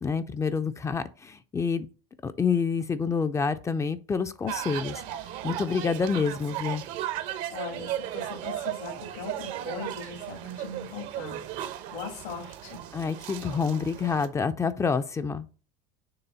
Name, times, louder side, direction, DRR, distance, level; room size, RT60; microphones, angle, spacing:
voice 1, 0.0-1.9 2.2-5.0 5.4-6.8 12.9-15.5, left 5 dB, 20° left, 0.5 m, -28 dB
sound 1, 4.5-14.3, right 12 dB, 60° right, 0.9 m, -36 dB
voice 2, 7.5-11.4 11.9-12.8, left 4 dB, 80° left, 2.7 m, -39 dB
6.9 x 3.3 x 5.6 m
supercardioid pair, 115°, 15 cm